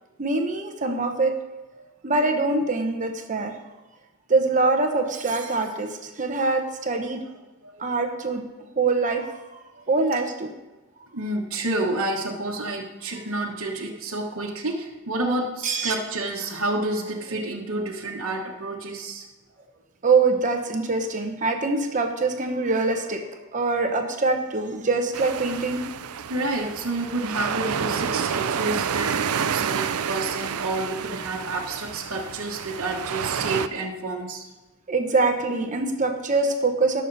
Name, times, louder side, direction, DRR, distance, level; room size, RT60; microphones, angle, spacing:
voice 1, 0.2-1.5 2.0-3.6 4.3-7.3 7.8-9.3 9.9-10.5 15.6-15.9 20.0-25.9 34.9-37.0, right 3 dB, 35° right, 4 dB, 0.9 m, -24 dB
voice 2, 11.1-19.3 26.3-34.4, right 2 dB, 65° right, -2 dB, 1.3 m, -29 dB
sound 1, 25.1-33.7, right 7 dB, 85° right, 0.5 m, -29 dB
19.0 x 6.6 x 4.1 m, 1.2 s
head